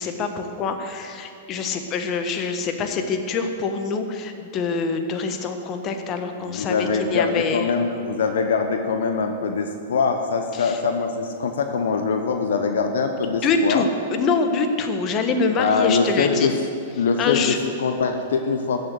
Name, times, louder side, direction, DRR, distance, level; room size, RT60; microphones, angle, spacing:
voice 1, 0.0-7.7 10.5-10.8 13.2-16.5 17.2-17.6, left 4 dB, 35° left, 6 dB, 1.4 m, -25 dB
voice 2, 6.4-13.9 15.6-16.5 17.0-18.8, left 5 dB, 65° left, 6 dB, 0.9 m, -23 dB
14.5 x 6.8 x 8.0 m, 2.5 s
figure-of-eight pair, 105°, 0 cm